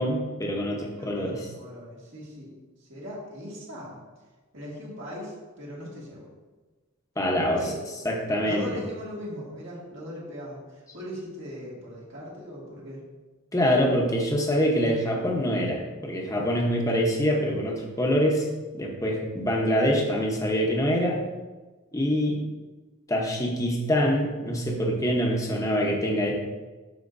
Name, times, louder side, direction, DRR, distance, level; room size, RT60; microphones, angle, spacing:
voice 1, 0.0-1.5 7.2-7.6 8.0-8.8 13.5-18.5 18.8-21.2 21.9-22.4 23.1-26.3, equal, 15° left, 0 dB, 0.9 m, -25 dB
voice 2, 0.9-2.5 2.8-4.0 4.5-6.3 7.6-7.8 8.4-13.0, equal, 60° right, -5 dB, 2.0 m, -39 dB
11.5 x 4.5 x 2.6 m, 1.3 s
head